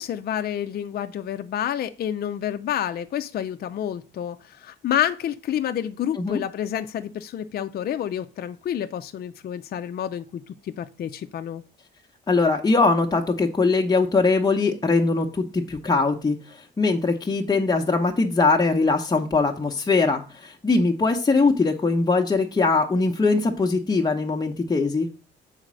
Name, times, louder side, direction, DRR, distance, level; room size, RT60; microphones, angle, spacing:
voice 1, 0.0-11.6, left 10 dB, 50° left, 0.5 m, -29 dB
voice 2, 12.3-25.1, left 3 dB, 20° left, 0.8 m, -21 dB
6.4 x 4.2 x 6.1 m
cardioid pair, 90°, 20 cm